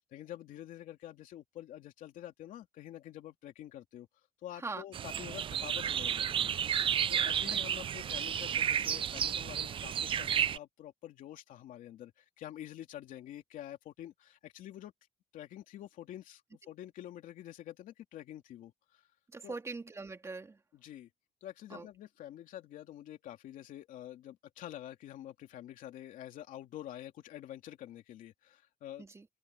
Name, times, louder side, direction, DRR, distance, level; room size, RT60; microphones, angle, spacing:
voice 1, 0.1-4.1 4.4-6.6 7.1-14.9 15.3-19.0 19.4-19.6 20.7-21.1 21.4-29.1, left 12 dB, 85° left, 2.9 m, -47 dB
sound 1, 4.9-10.6, right 9 dB, 40° right, 0.4 m, -32 dB
voice 2, 19.3-20.6 21.7-21.9 29.0-29.3, right 3 dB, 20° right, 2.7 m, -42 dB
cardioid pair, 130°, 13 cm